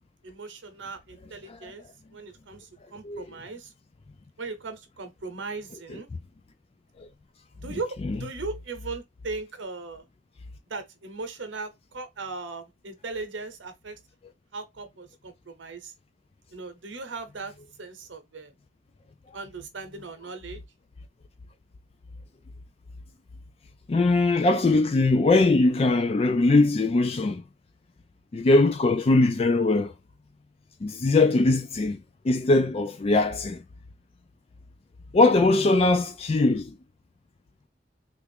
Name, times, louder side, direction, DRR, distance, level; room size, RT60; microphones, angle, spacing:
voice 1, 0.2-1.9 2.1-3.7 4.4-6.1 7.6-10.1 10.7-14.0 14.5-15.9 16.5-17.5 17.8-18.5 19.3-20.6, right 3 dB, 85° right, 0.8 m, -38 dB
voice 2, 7.7-8.2 23.9-27.4 28.3-29.9 30.8-33.6 35.1-36.7, left 2 dB, 35° left, 0.4 m, -21 dB
3.3 x 2.5 x 3.4 m
head